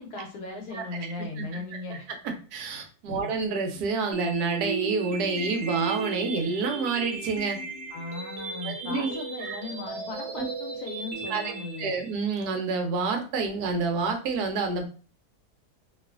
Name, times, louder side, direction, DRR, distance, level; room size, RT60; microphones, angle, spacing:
voice 1, 0.0-2.1 3.0-3.3 7.9-12.0, left 3 dB, 80° left, 1 dB, 1.2 m, -38 dB
voice 2, 1.9-7.6 8.6-9.6 10.3-10.5 11.3-11.5 11.8-14.9, right 4 dB, 75° right, 4 dB, 1.2 m, -29 dB
sound 1, 4.1-12.1, right 4 dB, 55° right, 0.8 m, -35 dB
3.1 x 2.3 x 2.4 m, 0.37 s
omnidirectional pair, 1.7 m